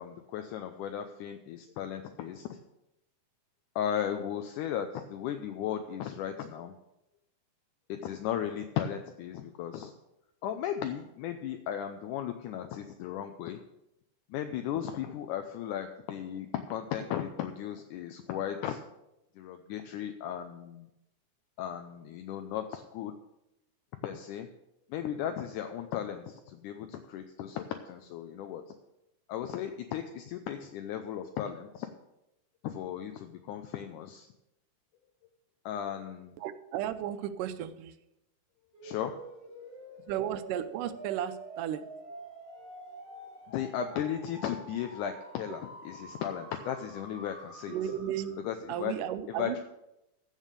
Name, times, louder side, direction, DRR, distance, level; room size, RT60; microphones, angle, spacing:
voice 1, 0.0-2.6 3.8-6.7 7.9-9.9 10.4-13.6 14.3-18.8 19.4-20.9 21.6-23.1 24.0-24.5 24.9-28.6 29.3-31.9 32.6-34.3 35.7-36.4 38.8-39.8 42.6-42.7 43.1-47.7 48.4-48.9 49.3-49.6, left 9 dB, 80° left, 6 dB, 2.1 m, -36 dB
voice 2, 36.4-38.0 40.1-41.9 47.7-48.4 48.7-49.6, right 10 dB, 85° right, 11 dB, 2.2 m, -34 dB
sound 1, 38.7-48.6, right 2 dB, 50° right, 3.7 m, -47 dB
14.5 x 5.5 x 6.7 m, 0.87 s
omnidirectional pair, 3.7 m